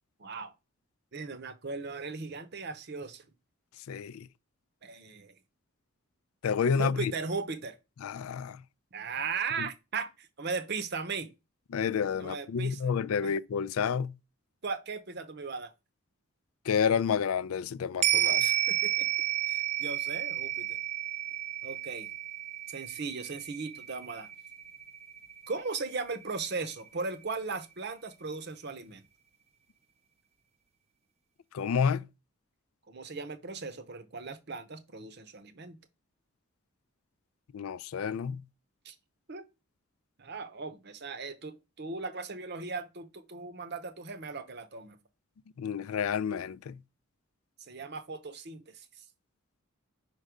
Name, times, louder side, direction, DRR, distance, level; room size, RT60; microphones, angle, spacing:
voice 1, 0.2-0.5 1.1-3.2 4.8-5.3 6.8-7.8 8.9-11.3 12.2-12.8 13.2-13.3 14.6-15.7 18.4-19.1 19.4-20.8 21.6-22.1 22.7-24.3 25.5-29.0 32.9-35.8 38.8-38.9 39.3-39.4 40.2-45.0 47.7-48.9, right 4 dB, 50° right, 0.8 m, -37 dB
voice 2, 3.9-4.3 6.4-7.1 8.0-8.6 9.6-9.7 11.7-14.1 16.7-18.4 31.5-32.0 37.5-38.4 45.6-46.8, left 6 dB, 85° left, 0.4 m, -29 dB
sound 1, 18.0-26.6 26.9-27.0, right 13 dB, 30° right, 0.3 m, -32 dB
5.3 x 4.7 x 5.0 m
head